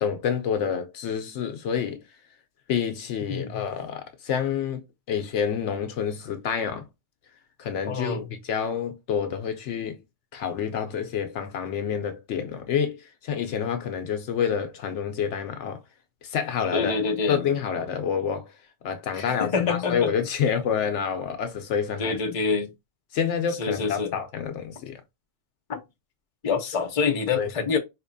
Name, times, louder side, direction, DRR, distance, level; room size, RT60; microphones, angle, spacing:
voice 1, 0.0-2.0 2.7-6.9 7.6-10.0 10.3-15.8 16.2-17.0 17.3-18.5 18.8-22.2 23.1-25.0 27.4-27.5, left 7 dB, 70° left, 0.8 m, -28 dB
voice 2, 7.9-8.2 16.7-17.4 19.1-20.1 22.0-22.7 23.6-24.1 25.7-25.8 26.4-27.8, left 5 dB, 35° left, 0.6 m, -26 dB
4.2 x 2.9 x 2.5 m
omnidirectional pair, 1.3 m